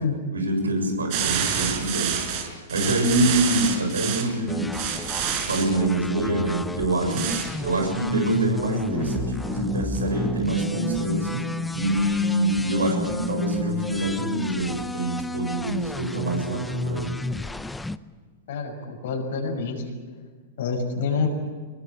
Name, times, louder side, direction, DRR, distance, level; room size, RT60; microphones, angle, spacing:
voice 1, 0.3-2.2 2.7-4.7 5.5-7.3 7.6-17.3, right 1 dB, 85° right, 4 dB, 7.1 m, -25 dB
sound 1, 1.1-4.3 4.7-5.7 7.1-7.5, right 8 dB, 50° right, 5.4 m, -27 dB
sound 2, 4.5-18.0, left 2 dB, 5° left, 0.7 m, -32 dB
voice 2, 18.5-19.9 20.6-21.3, left 5 dB, 65° left, 1 dB, 6.2 m, -27 dB
26.0 x 21.0 x 8.6 m, 1.5 s
hypercardioid pair, 105°, 0 cm